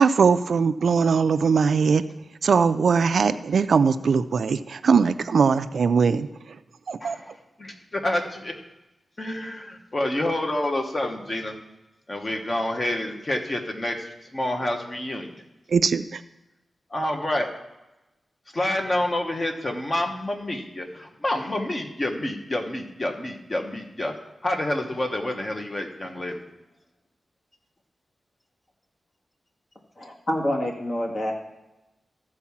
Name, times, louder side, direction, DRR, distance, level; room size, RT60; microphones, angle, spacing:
voice 1, 0.0-2.0 2.4-6.3 6.9-7.2 15.7-16.2, right 5 dB, 70° right, 12 dB, 0.4 m, -20 dB
voice 2, 7.0-7.3 7.6-8.5 9.2-11.6 12.1-15.3 16.9-17.5 18.5-24.1 24.4-26.4, left 1 dB, 30° left, 3 dB, 1.3 m, -28 dB
voice 3, 30.0-31.3, left 1 dB, 45° left, 0 dB, 1.9 m, -27 dB
14.0 x 4.7 x 7.2 m, 1.0 s
wide cardioid pair, 145°, 0 cm